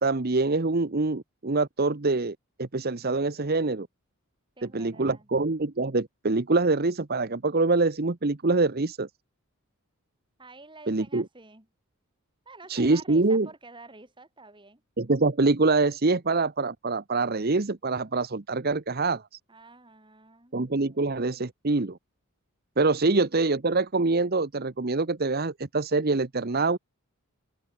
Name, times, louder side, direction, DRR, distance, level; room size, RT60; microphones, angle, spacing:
voice 1, 0.0-3.9 4.6-9.1 10.9-11.2 12.7-13.5 15.0-19.2 20.5-22.0 22.8-26.8, right 3 dB, 45° right, 0.9 m, -25 dB
voice 2, 4.6-5.3 10.4-11.7 12.4-14.8 19.5-20.6 20.9-21.1 23.0-23.1, right 3 dB, 20° right, 5.1 m, -49 dB
open air
head